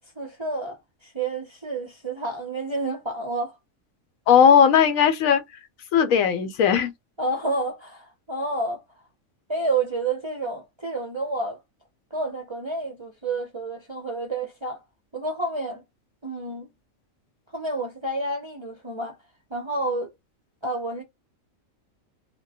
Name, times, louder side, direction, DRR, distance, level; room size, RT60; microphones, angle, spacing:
voice 1, 0.2-3.6 7.2-8.8 9.5-11.6 12.1-14.8 15.1-15.8 16.2-16.7 17.5-19.1 19.5-20.1 20.6-21.0, right 2 dB, 35° right, 0.5 m, -29 dB
voice 2, 4.3-5.4 5.9-6.9, left 7 dB, 85° left, 1.0 m, -17 dB
3.4 x 2.1 x 2.7 m
omnidirectional pair, 1.4 m